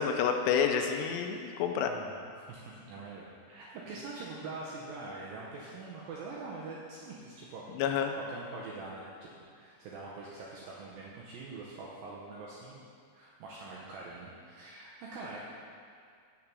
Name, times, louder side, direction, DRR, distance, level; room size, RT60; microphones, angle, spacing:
voice 1, 0.0-1.9 7.8-8.1, left 7 dB, 85° left, 5 dB, 2.6 m, -29 dB
voice 2, 1.8-7.6 8.2-12.8 13.1-15.4, right 3 dB, 75° right, -5 dB, 2.1 m, -44 dB
7.2 x 6.7 x 6.0 m, 2.3 s
omnidirectional pair, 5.1 m